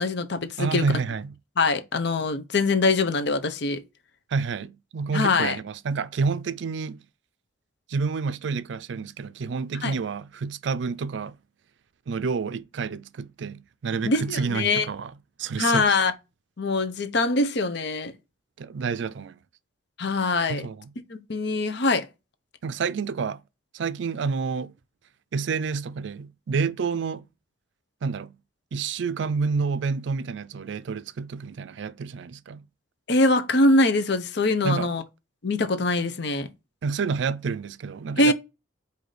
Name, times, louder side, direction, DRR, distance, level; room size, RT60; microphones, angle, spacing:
voice 1, 0.0-0.8 1.6-3.8 5.1-5.6 9.8-9.9 14.0-14.9 15.6-16.1 16.6-18.1 20.0-20.7 21.1-22.1 33.1-35.0 35.4-36.5 38.2-38.3, left 2 dB, 60° left, 0.7 m, -23 dB
voice 2, 0.6-1.4 4.3-7.0 7.9-11.3 12.1-15.1 15.4-16.0 18.6-19.4 20.5-20.9 22.6-23.4 23.7-24.7 25.3-27.2 28.0-28.4 28.7-32.6 34.6-34.9 36.8-38.3, right 5 dB, 65° right, 0.4 m, -29 dB
4.9 x 2.7 x 3.9 m
head